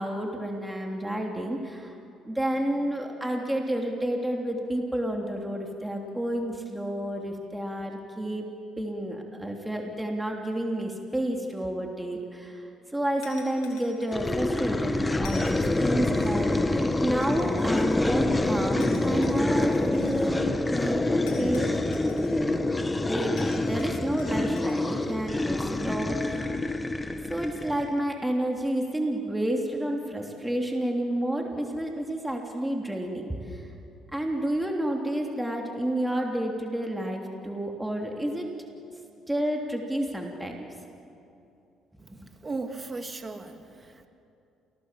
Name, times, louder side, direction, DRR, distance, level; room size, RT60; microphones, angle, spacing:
voice 1, 0.0-1.9 2.2-8.5 8.8-21.7 23.0-26.5 27.3-33.7 34.1-38.5 39.3-40.7 42.1-42.2, right 1 dB, 10° right, 1 dB, 3.1 m, -30 dB
sound 1, 13.2-14.5 15.2-16.5 17.2-18.3 18.8-20.3 21.3-22.6 23.4-25.1, left 5 dB, 80° left, 4.2 m, -49 dB
sound 2, 14.1-28.0, left 2 dB, 15° left, 1.4 m, -26 dB
voice 2, 42.4-44.1, right 3 dB, 30° right, 6 dB, 2.2 m, -37 dB
28.5 x 18.0 x 7.5 m, 2.7 s
supercardioid pair, 70°, 0 cm